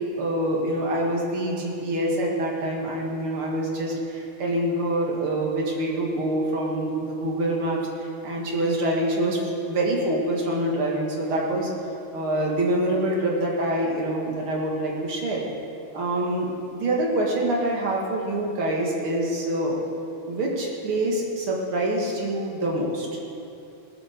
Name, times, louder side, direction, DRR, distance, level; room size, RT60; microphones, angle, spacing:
voice 1, 0.2-9.4 9.7-11.7 12.1-15.4 15.9-19.8 20.3-23.1, right 1 dB, 45° right, -2 dB, 2.1 m, -25 dB
19.0 x 7.2 x 6.7 m, 2.7 s
omnidirectional pair, 4.4 m